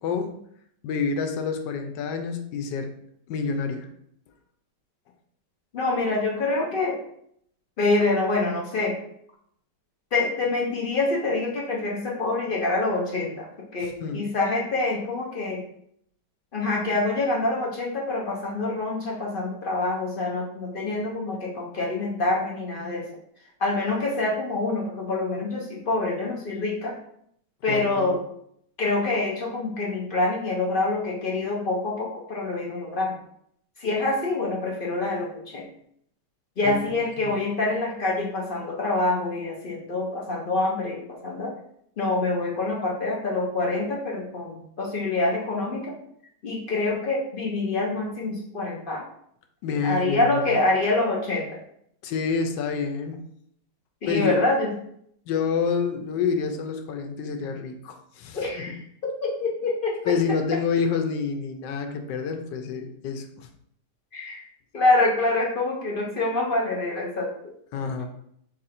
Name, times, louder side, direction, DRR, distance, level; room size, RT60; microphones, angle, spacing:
voice 1, 0.0-0.4 0.8-2.9 3.3-3.9 13.8-14.2 27.7-28.1 36.6-37.4 49.6-50.3 52.0-53.2 54.1-54.4 55.3-58.7 60.1-63.5 67.7-68.1, left 5 dB, 90° left, 6 dB, 1.3 m, -28 dB
voice 2, 5.7-7.0 7.8-9.0 10.1-15.6 16.5-23.1 23.6-26.9 27.6-28.2 28.8-33.2 33.8-35.7 36.6-41.5 42.0-45.9 46.4-49.0 49.8-51.6 54.0-54.7 58.3-60.1 64.1-64.4 64.7-67.5, left 2 dB, 65° left, -2 dB, 0.5 m, -26 dB
4.1 x 2.5 x 4.2 m, 0.69 s
omnidirectional pair, 1.9 m